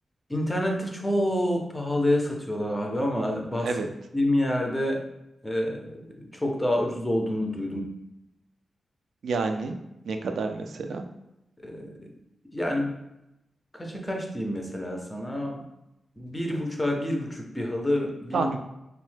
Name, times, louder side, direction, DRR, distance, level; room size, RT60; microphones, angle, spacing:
voice 1, 0.3-3.8 4.1-5.0 5.4-7.9 11.6-11.9 12.5-13.0 13.7-15.6 16.2-18.5, left 1 dB, 10° left, 1 dB, 0.4 m, -28 dB
voice 2, 9.2-9.8 10.1-11.0 18.3-18.6, right 4 dB, 80° right, 6 dB, 0.3 m, -28 dB
3.0 x 2.1 x 3.2 m, 0.87 s
wide cardioid pair, 140°, 0 cm